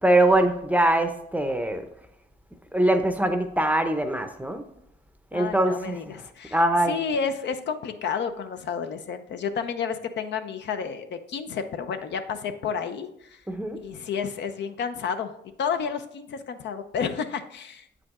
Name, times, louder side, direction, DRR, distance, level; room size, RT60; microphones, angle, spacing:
voice 1, 0.0-1.8 2.7-4.6 5.3-6.2 6.5-7.0 13.5-13.8, right 1 dB, 5° right, 8 dB, 0.7 m, -22 dB
voice 2, 5.3-13.4 13.8-15.3 15.6-17.9, left 6 dB, 65° left, 8 dB, 0.6 m, -31 dB
7.7 x 5.0 x 3.6 m, 0.78 s
cardioid pair, 90°, 20 cm